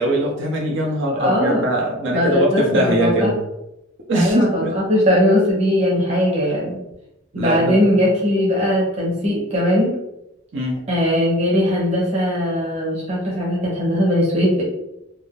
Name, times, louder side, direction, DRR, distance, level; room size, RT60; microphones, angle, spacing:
voice 1, 0.0-3.4 4.1-4.7 7.3-8.0 10.5-10.8, right 1 dB, 60° right, -1 dB, 0.6 m, -21 dB
voice 2, 1.2-1.6 2.1-3.3 4.1-6.8 7.3-9.9 10.9-14.6, left 1 dB, 30° right, -5 dB, 1.0 m, -19 dB
3.5 x 2.6 x 2.4 m, 0.86 s
head